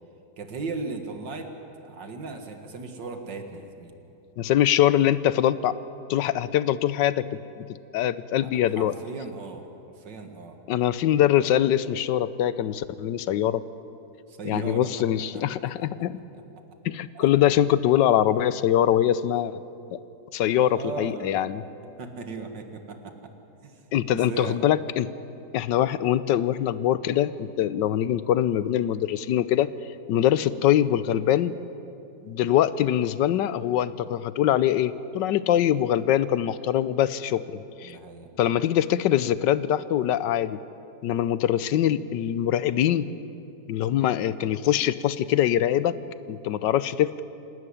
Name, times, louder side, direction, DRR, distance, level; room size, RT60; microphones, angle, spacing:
voice 1, 0.4-1.5 1.8-3.9 8.4-8.5 8.7-10.6 14.3-14.9 15.3-15.4 15.8-16.1 17.1-17.3 20.5-21.4 22.0-23.3 23.6-24.6 37.8-38.3, right 4 dB, 85° right, 5 dB, 2.4 m, -37 dB
voice 2, 4.4-5.8 6.1-7.3 7.6-7.7 7.9-8.9 10.7-13.6 14.4-16.2 16.8-19.6 19.9-20.0 20.3-21.6 23.9-25.1 25.5-29.7 30.1-31.5 32.2-38.0 38.4-40.6 41.0-43.1 43.7-45.9 46.3-47.2, left 11 dB, 90° left, 16 dB, 1.4 m, -23 dB
27.0 x 12.5 x 10.0 m, 2.8 s
omnidirectional pair, 1.9 m